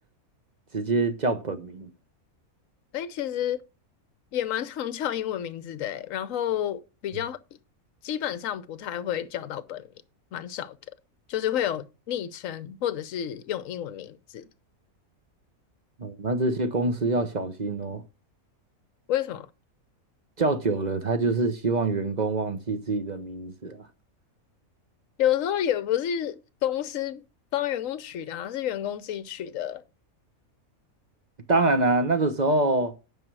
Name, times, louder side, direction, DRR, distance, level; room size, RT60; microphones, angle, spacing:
voice 1, 0.7-1.9 16.0-18.0 20.4-23.9 31.5-32.9, right 3 dB, 35° right, 0.9 m, -25 dB
voice 2, 2.9-3.6 4.3-7.4 8.0-9.9 10.3-10.8 11.3-14.5 19.1-19.5 25.2-27.2 27.5-29.8, left 11 dB, 65° left, 1.1 m, -30 dB
9.3 x 5.5 x 6.1 m
omnidirectional pair, 1.5 m